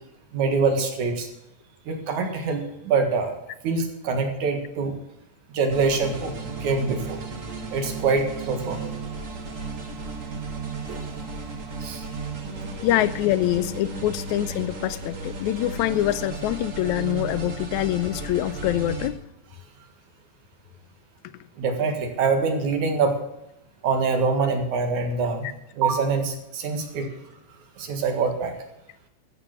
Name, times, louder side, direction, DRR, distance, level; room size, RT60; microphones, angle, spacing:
voice 1, 0.3-1.3 1.9-3.3 3.6-5.0 5.5-6.3 6.6-7.2 7.7-8.8 10.9-11.1 11.8-12.1 21.6-23.2 23.8-25.5 25.7-27.1 27.8-28.5, right 4 dB, 85° right, 5 dB, 3.2 m, -24 dB
Gothic Dutch Trance, 5.7-19.1, right 3 dB, 40° right, 1.1 m, -34 dB
voice 2, 12.8-19.1, left 14 dB, 85° left, 15 dB, 2.0 m, -25 dB
14.5 x 6.9 x 7.6 m, 0.85 s
omnidirectional pair, 3.3 m